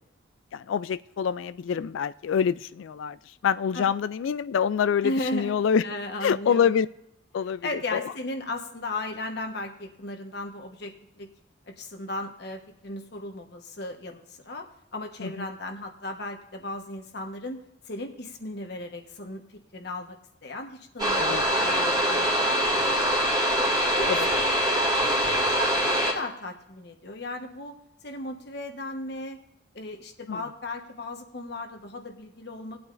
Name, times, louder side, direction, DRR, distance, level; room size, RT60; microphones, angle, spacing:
voice 1, 0.5-3.2 3.4-5.8 6.2-6.9 7.3-8.0 15.2-15.5 21.2-21.5 24.1-24.2 30.3-30.4, left 7 dB, 70° left, 15 dB, 0.3 m, -26 dB
voice 2, 5.0-5.6 5.8-6.7 7.6-11.3 11.7-14.7 14.9-17.6 17.9-22.3 22.7-22.8 23.1-23.6 23.9-24.6 25.0-27.8 28.0-29.4 29.7-32.9, left 2 dB, 50° left, 4 dB, 1.2 m, -36 dB
sound 1, 21.0-26.1, equal, 20° right, 2.2 m, -24 dB
19.0 x 8.7 x 2.5 m, 0.83 s
head